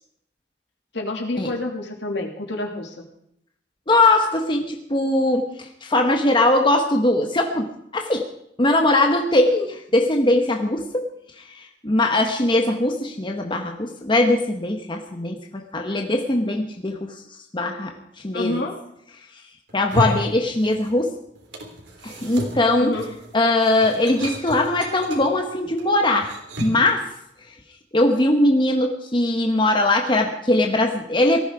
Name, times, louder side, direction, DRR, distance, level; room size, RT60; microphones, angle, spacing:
voice 1, 0.9-3.0 18.3-18.7 20.0-20.2 22.8-23.1, left 2 dB, 70° left, 1 dB, 3.0 m, -28 dB
voice 2, 3.9-8.3 8.6-11.1 11.4-17.2 17.5-17.9 18.2-18.6 19.7-21.2 22.0-23.0 23.3-26.3 26.6-27.1 27.9-31.4, left 2 dB, 25° left, 3 dB, 1.3 m, -20 dB
sound 1, 19.7-21.1 21.4-26.9, equal, 90° right, 3.5 m, -32 dB
18.5 x 14.5 x 4.9 m, 0.75 s
head